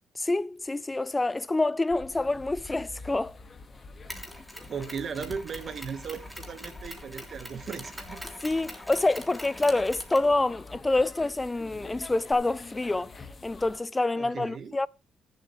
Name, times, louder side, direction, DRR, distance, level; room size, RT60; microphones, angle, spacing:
voice 1, 0.2-3.4 8.4-13.1 13.4-14.9, left 2 dB, 15° left, 0.5 m, -27 dB
sound 1, 1.9-13.8, left 3 dB, 35° left, 1.9 m, -47 dB
Mechanisms, 4.1-12.3, equal, 5° right, 3.2 m, -44 dB
voice 2, 4.7-8.2 14.2-14.8, right 6 dB, 55° right, 1.7 m, -37 dB
21.5 x 7.7 x 3.3 m
cardioid pair, 90°, 0 cm